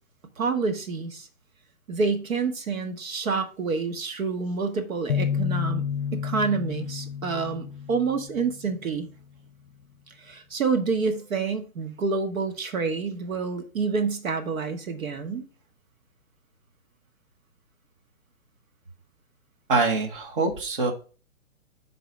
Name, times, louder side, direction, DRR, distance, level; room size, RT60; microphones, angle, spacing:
voice 1, 0.4-1.3 1.9-5.8 6.1-9.1 10.2-15.4, right 4 dB, 75° right, 1.3 m, -28 dB
sound 1, 5.1-8.8, left 7 dB, 60° left, 0.6 m, -30 dB
voice 2, 19.7-20.9, right 3 dB, 40° right, 1.2 m, -24 dB
5.8 x 4.0 x 5.1 m
hypercardioid pair, 165°, 41 cm